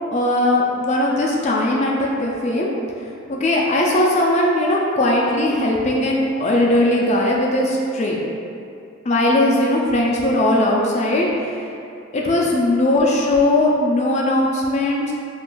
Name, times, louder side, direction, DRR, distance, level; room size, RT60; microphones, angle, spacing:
voice 1, 0.1-2.7 3.3-8.2 9.1-11.7 12.1-15.1, left 1 dB, 35° left, -2 dB, 0.3 m, -19 dB
2.5 x 2.3 x 3.7 m, 2.6 s
head